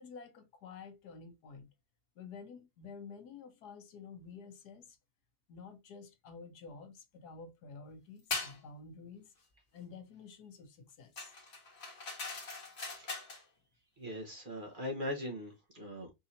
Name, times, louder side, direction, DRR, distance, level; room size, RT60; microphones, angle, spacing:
voice 1, 0.0-1.7 2.2-5.0 5.5-9.3 9.7-11.3, left 5 dB, 80° left, 1.5 m, -50 dB
sound 1, 8.3-8.6 11.2-13.4, left 3 dB, 40° left, 1.7 m, -40 dB
voice 2, 13.0-13.3 14.0-16.1, left 1 dB, 35° right, 1.0 m, -40 dB
5.4 x 2.8 x 2.6 m
omnidirectional pair, 1.7 m